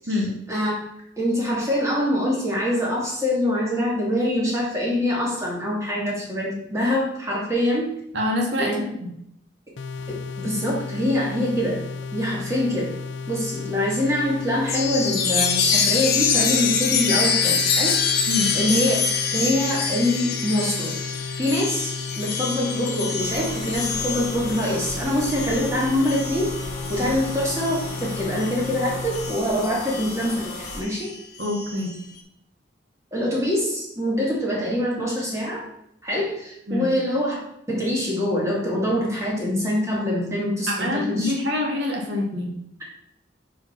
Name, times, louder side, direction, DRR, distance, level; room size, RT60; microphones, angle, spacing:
voice 1, 1.2-7.9 8.6-8.8 10.4-11.8 12.1-12.9 13.3-17.9 18.5-18.9 19.3-20.9 21.3-26.5 26.9-31.1 33.1-35.6 36.0-37.4 37.7-41.3, left 1 dB, 15° right, -4 dB, 2.2 m, -24 dB
voice 2, 8.1-8.7 9.0-9.1 18.3-18.6 27.0-27.1 31.4-31.9 36.7-37.0 40.7-42.5, left 1 dB, 65° right, 0 dB, 1.5 m, -26 dB
sound 1, 9.8-29.4, left 5 dB, 75° left, 0.5 m, -34 dB
Chime, 14.7-28.7 29.1-31.9, left 6 dB, 55° left, 1.1 m, -26 dB
sound 2, 23.2-30.8, left 2 dB, 35° left, 2.1 m, -36 dB
5.0 x 4.9 x 5.8 m, 0.77 s
head